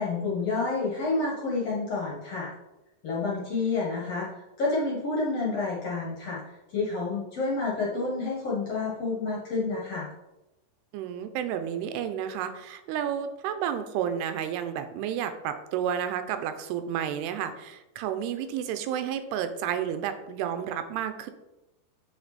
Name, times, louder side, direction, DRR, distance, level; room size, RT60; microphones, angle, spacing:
voice 1, 0.0-2.5 3.0-4.3 4.6-6.4 6.7-10.1, left 3 dB, 55° left, -4 dB, 1.8 m, -29 dB
voice 2, 10.9-21.3, right 9 dB, 90° right, 9 dB, 2.7 m, -31 dB
7.8 x 5.7 x 4.1 m, 0.97 s
omnidirectional pair, 4.6 m